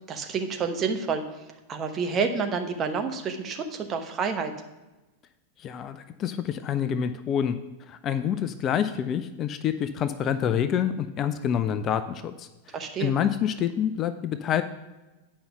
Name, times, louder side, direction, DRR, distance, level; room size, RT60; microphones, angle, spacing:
voice 1, 0.1-1.2 1.7-4.5 12.7-13.1, right 5 dB, 25° right, 5 dB, 1.0 m, -29 dB
voice 2, 5.6-7.6 7.9-12.7 13.0-14.6, left 9 dB, 30° left, 11 dB, 0.4 m, -27 dB
8.7 x 5.5 x 5.8 m, 1.1 s
figure-of-eight pair, 90°, 0 cm